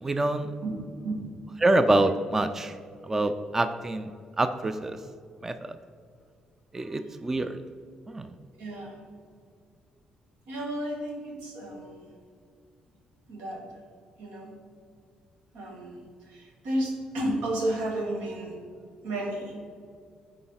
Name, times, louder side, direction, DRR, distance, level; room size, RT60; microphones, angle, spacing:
voice 1, 0.0-0.5 1.6-2.7 3.1-4.1 4.4-5.0 5.4-5.5 6.7-7.6 8.1-8.3, right 2 dB, 15° right, 10 dB, 0.3 m, -25 dB
voice 2, 0.6-1.3 7.0-7.1 8.6-9.0 10.5-12.1 13.3-13.7 14.2-14.5 15.5-18.6 19.0-19.7, right 1 dB, 90° right, 0 dB, 1.6 m, -33 dB
9.9 x 4.2 x 3.9 m, 2.3 s
cardioid pair, 110°, 2 cm